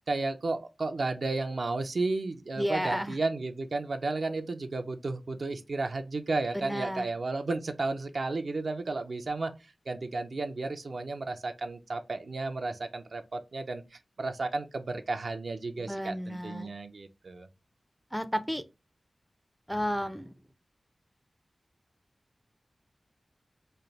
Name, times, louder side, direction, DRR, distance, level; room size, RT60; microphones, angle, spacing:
voice 1, 0.1-17.5, right 3 dB, 70° right, 0.5 m, -33 dB
voice 2, 2.6-3.1 6.5-7.1 15.8-16.7 18.1-18.6 19.7-20.3, equal, 5° right, 0.4 m, -32 dB
3.2 x 2.4 x 3.9 m
wide cardioid pair, 80°, 0 cm